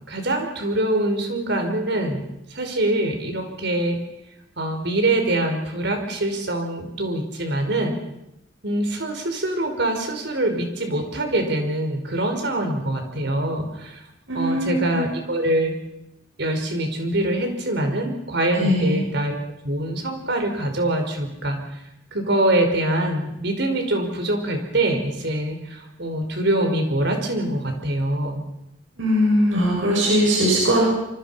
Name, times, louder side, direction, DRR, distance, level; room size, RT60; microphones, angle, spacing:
voice 1, 0.0-2.2 2.5-4.0 4.6-8.0 8.6-14.0 14.3-15.7 16.4-19.4 19.6-21.8 22.1-28.4, right 1 dB, 60° right, 4 dB, 5.2 m, -24 dB
voice 2, 14.3-15.1 18.6-19.0 29.0-30.9, equal, 85° right, -2 dB, 6.9 m, -20 dB
26.5 x 25.0 x 5.8 m, 0.84 s
head